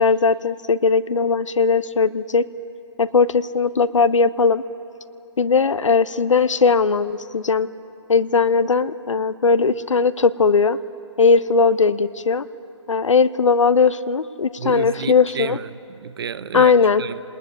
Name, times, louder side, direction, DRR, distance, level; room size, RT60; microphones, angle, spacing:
voice 1, 0.0-2.4 3.0-4.6 5.4-7.7 8.1-10.8 11.2-12.4 12.9-15.6 16.5-17.0, left 5 dB, 85° left, 0.9 m, -18 dB
voice 2, 14.6-17.2, right 7 dB, 50° right, 0.9 m, -31 dB
28.0 x 20.0 x 9.7 m
hypercardioid pair, 150°, 16 cm